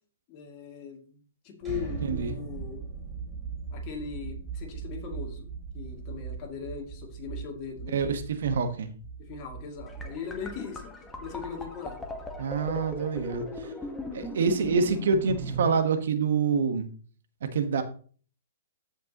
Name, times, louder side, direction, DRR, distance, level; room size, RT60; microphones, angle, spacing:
voice 1, 0.3-2.8 3.7-5.5 5.7-8.0 9.2-12.1 12.6-13.0, left 6 dB, 35° left, 1 dB, 2.4 m, -39 dB
sound 1, 1.6-13.4, right 5 dB, 15° right, 3.9 m, -40 dB
voice 2, 2.0-2.4 7.9-8.9 12.4-13.7 14.1-16.9 17.5-17.8, right 5 dB, 70° right, 8 dB, 1.3 m, -26 dB
sound 2, 9.9-15.7, equal, 5° left, 1.2 m, -38 dB
14.0 x 5.3 x 3.0 m, 0.42 s
hypercardioid pair, 150°, 0 cm